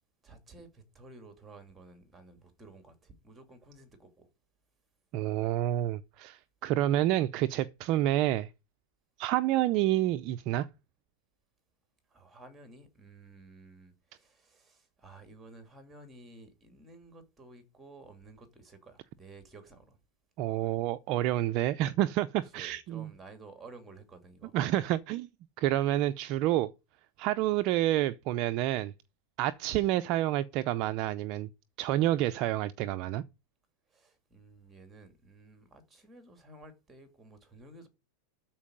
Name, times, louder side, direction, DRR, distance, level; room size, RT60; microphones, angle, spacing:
voice 1, 0.2-4.3 12.1-20.0 22.5-24.6 33.9-37.9, right 2 dB, 10° right, 2.3 m, -53 dB
voice 2, 5.1-8.5 9.2-10.7 20.4-23.1 24.5-25.3 25.6-26.7 27.2-28.9 29.4-31.5 31.8-33.2, right 14 dB, 35° right, 0.5 m, -28 dB
13.0 x 4.6 x 8.6 m
supercardioid pair, 170°, 0 cm